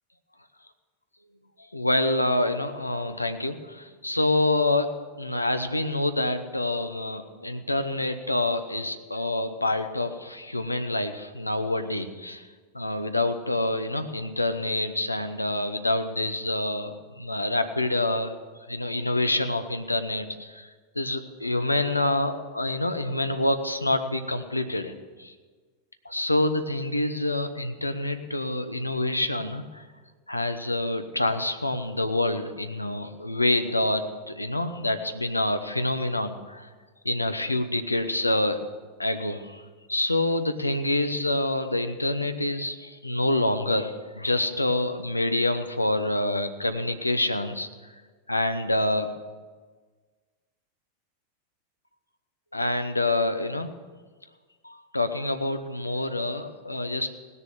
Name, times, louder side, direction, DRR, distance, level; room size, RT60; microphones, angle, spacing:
voice 1, 1.7-4.9 5.2-12.5 12.7-18.3 18.7-20.7 21.0-24.9 25.2-25.3 26.0-29.8 30.3-36.7 37.0-38.6 39.0-39.6 39.9-47.7 48.3-49.1 52.5-53.7 54.6-57.1, left 2 dB, 85° left, 8 dB, 0.8 m, -27 dB
18.0 x 6.8 x 7.2 m, 1.5 s
figure-of-eight pair, 90°, 0 cm